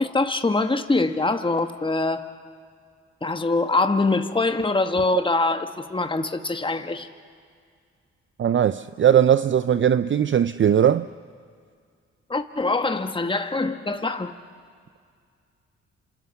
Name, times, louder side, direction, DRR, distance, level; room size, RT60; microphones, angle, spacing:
voice 1, 0.0-2.3 3.2-7.1 12.3-14.4, left 3 dB, 15° left, 1.4 m, -24 dB
voice 2, 8.4-11.1, right 9 dB, 40° right, 0.6 m, -19 dB
28.5 x 26.5 x 7.1 m
supercardioid pair, 50°, 29 cm